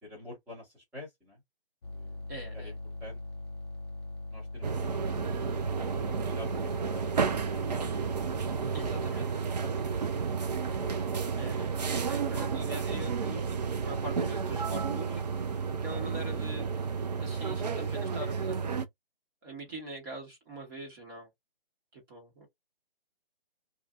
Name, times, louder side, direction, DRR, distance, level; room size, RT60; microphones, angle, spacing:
voice 1, 0.0-1.4 1.9-2.2 2.5-2.7 3.0-3.2 4.3-5.2 6.2-7.3 7.6-7.9 9.6-10.1 15.7-16.0, left 1 dB, 5° right, 1.1 m, -48 dB
sound 1, 1.8-9.1, left 2 dB, 30° left, 0.5 m, -41 dB
voice 2, 2.3-2.7 8.7-9.4 11.3-15.2 15.8-16.7 17.2-18.8 19.4-21.3 21.9-22.5, right 1 dB, 20° right, 1.3 m, -43 dB
sound 2, 4.6-18.9, right 5 dB, 45° right, 0.5 m, -31 dB
2.5 x 2.4 x 2.5 m
figure-of-eight pair, 145°, 29 cm